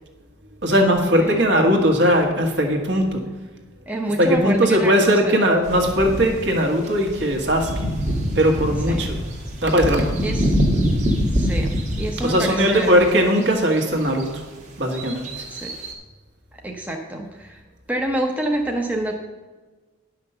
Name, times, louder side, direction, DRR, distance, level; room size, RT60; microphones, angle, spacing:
voice 1, 0.6-3.2 4.0-7.9 8.3-9.2 9.6-10.1 12.2-14.4 14.8-15.4, equal, 60° right, 2 dB, 1.7 m, -19 dB
voice 2, 3.9-5.5 8.9-9.1 10.2-10.6 11.3-13.0 15.5-15.7 16.6-17.6 17.9-19.1, right 1 dB, 10° right, 1 dB, 0.8 m, -27 dB
sound 1, 5.6-6.5 6.9-13.1 13.4-13.5 13.7-14.3 14.9-15.9, equal, 35° right, 1.4 m, -24 dB
10.0 x 5.8 x 6.8 m, 1.3 s
head